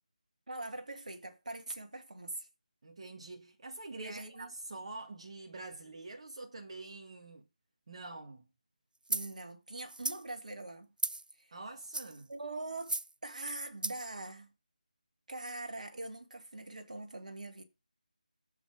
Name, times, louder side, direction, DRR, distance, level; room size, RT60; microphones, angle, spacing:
voice 1, 0.5-2.5 4.0-4.5 9.1-10.9 11.4-11.6 12.3-14.5 15.3-17.6, right 2 dB, 65° right, 2.4 m, -43 dB
voice 2, 2.8-7.5 7.9-8.5 11.5-12.3, right 2 dB, 45° right, 1.7 m, -46 dB
sound 1, 9.1-9.3 9.9-10.2 11.0-11.3 11.8-12.2 12.8-13.1 13.8-14.1, right 2 dB, 80° right, 0.4 m, -35 dB
7.8 x 5.8 x 4.9 m
figure-of-eight pair, 155°, 5 cm